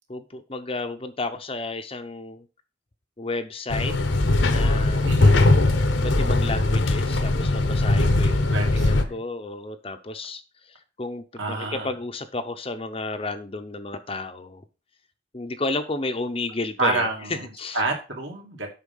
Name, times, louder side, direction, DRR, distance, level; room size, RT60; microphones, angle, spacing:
voice 1, 0.1-2.4 3.2-3.9 4.4-5.1 5.9-10.4 11.0-14.6 15.3-17.8, left 2 dB, 30° left, 8 dB, 0.7 m, -32 dB
sound 1, 3.7-9.0, left 2 dB, 70° left, 1.0 m, -20 dB
voice 2, 5.0-5.4 8.5-9.2 11.4-11.9 16.8-18.7, right 3 dB, 65° right, 1 dB, 2.5 m, -29 dB
8.3 x 5.7 x 5.5 m, 0.33 s
head